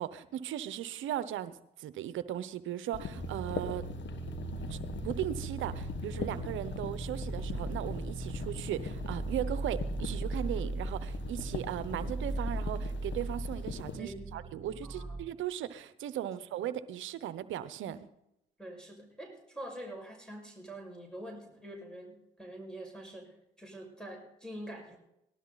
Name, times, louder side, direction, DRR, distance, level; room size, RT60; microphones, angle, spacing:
voice 1, 0.0-3.8 4.7-4.8 5.0-18.0, right 11 dB, 80° right, 14 dB, 0.8 m, -37 dB
sound 1, 2.9-14.0, left 6 dB, 70° left, 1.5 m, -42 dB
sound 2, 3.1-15.2, right 3 dB, 15° right, 3.8 m, -38 dB
voice 2, 14.0-14.5 14.8-15.2 17.9-18.0 18.6-25.0, right 1 dB, 5° left, 1 dB, 5.8 m, -45 dB
19.0 x 12.5 x 4.0 m, 0.84 s
supercardioid pair, 50°, 20 cm